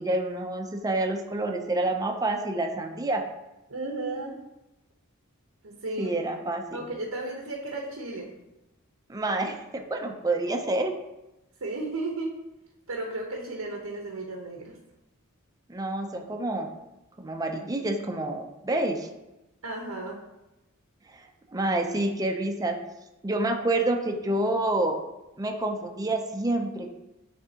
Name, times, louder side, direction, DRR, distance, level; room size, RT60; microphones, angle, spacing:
voice 1, 0.0-3.2 6.0-6.8 9.1-10.9 15.7-16.7 17.2-19.1 21.1-21.2 21.5-22.8 23.2-25.0 25.4-26.9, right 2 dB, 15° right, 3 dB, 0.5 m, -28 dB
voice 2, 3.7-4.3 5.6-6.1 6.7-8.3 11.6-12.3 12.9-14.8 19.6-20.2, right 2 dB, 90° right, 0 dB, 1.0 m, -34 dB
9.7 x 3.4 x 2.8 m, 0.97 s
head